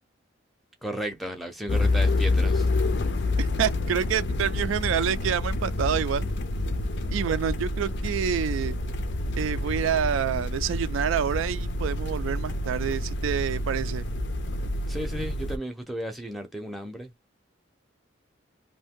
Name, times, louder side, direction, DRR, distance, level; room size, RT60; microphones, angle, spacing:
voice 1, 0.8-2.7 14.9-17.1, right 1 dB, ahead, 0.5 m, -34 dB
sound 1, 1.7-15.6, left 2 dB, 60° left, 0.4 m, -28 dB
voice 2, 3.4-6.3 7.1-8.8 9.4-14.1, right 8 dB, 80° right, 0.3 m, -27 dB
2.6 x 2.2 x 3.6 m
head